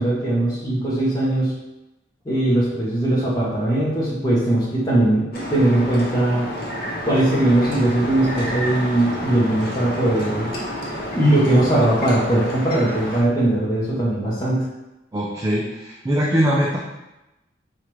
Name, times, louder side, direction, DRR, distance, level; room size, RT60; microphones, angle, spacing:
voice 1, 0.0-1.5 2.3-6.4 7.0-10.5 11.1-14.6, right 1 dB, 20° left, -8 dB, 0.8 m, -20 dB
sound 1, 5.3-13.2, equal, 55° left, 0.9 m, -29 dB
voice 2, 15.1-16.8, equal, 20° right, -4 dB, 0.4 m, -21 dB
4.6 x 2.4 x 3.0 m, 0.96 s
head